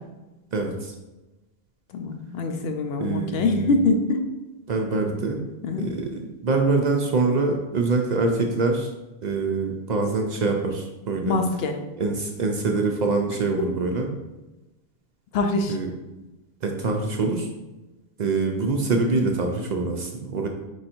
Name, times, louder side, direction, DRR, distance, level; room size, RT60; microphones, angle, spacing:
voice 1, 0.5-0.9 3.0-3.8 4.7-5.4 5.8-8.9 9.2-11.4 12.0-14.1 15.7-15.9 16.6-17.5 18.2-20.5, right 3 dB, 55° right, 2 dB, 0.5 m, -24 dB
voice 2, 1.9-4.2 5.6-5.9 11.3-11.8 15.3-15.8, left 3 dB, 80° left, 5 dB, 0.8 m, -24 dB
4.7 x 2.6 x 4.2 m, 1.1 s
omnidirectional pair, 1.0 m